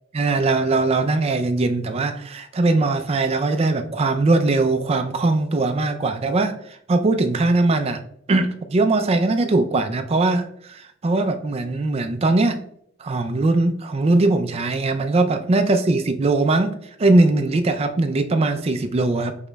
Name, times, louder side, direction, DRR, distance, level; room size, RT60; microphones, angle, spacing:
voice 1, 0.1-6.6 6.9-8.0 8.3-12.6 13.0-19.4, right 2 dB, 30° right, 7 dB, 0.4 m, -20 dB
5.0 x 4.4 x 2.2 m, 0.71 s
head